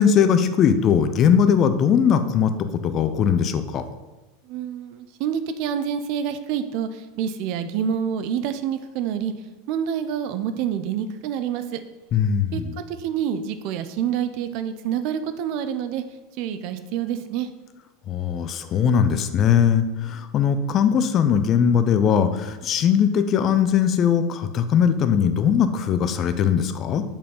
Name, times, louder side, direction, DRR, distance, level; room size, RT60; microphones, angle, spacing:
voice 1, 0.0-2.5 2.8-3.8 12.1-12.8 18.1-27.0, left 7 dB, 40° left, 10 dB, 0.7 m, -20 dB
voice 2, 4.5-9.3 9.7-11.8 12.5-12.6 12.9-16.0 16.4-17.5, right 8 dB, 55° right, 10 dB, 0.6 m, -27 dB
7.0 x 5.3 x 5.4 m, 1.2 s
hypercardioid pair, 85°, 0 cm